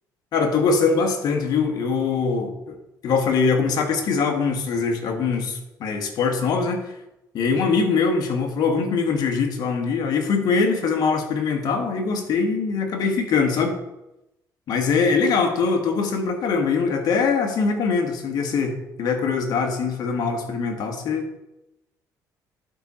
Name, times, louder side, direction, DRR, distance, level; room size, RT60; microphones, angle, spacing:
voice 1, 0.3-2.8 3.0-6.9 7.3-13.8 14.7-21.2, left 5 dB, 60° left, 3 dB, 1.5 m, -22 dB
11.5 x 5.0 x 4.3 m, 0.91 s
cardioid pair, 105°, 8 cm